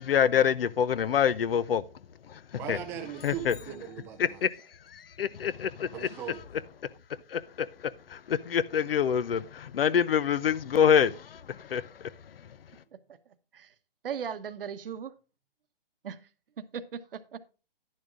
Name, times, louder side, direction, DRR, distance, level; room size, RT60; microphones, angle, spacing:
voice 1, 0.0-1.8 2.3-2.4 2.7-2.8 3.2-3.6 4.2-4.6 4.9-6.1 7.3-12.1, left 8 dB, 70° left, 0.7 m, -26 dB
voice 2, 2.6-4.4 5.9-6.4, right 9 dB, 10° right, 0.4 m, -39 dB
sound 1, 3.1-4.5, left 6 dB, 25° left, 2.7 m, -55 dB
voice 3, 14.0-15.1 16.0-16.2 16.6-17.4, right 7 dB, 65° right, 1.0 m, -37 dB
10.5 x 10.5 x 2.5 m
hypercardioid pair, 140°, 30 cm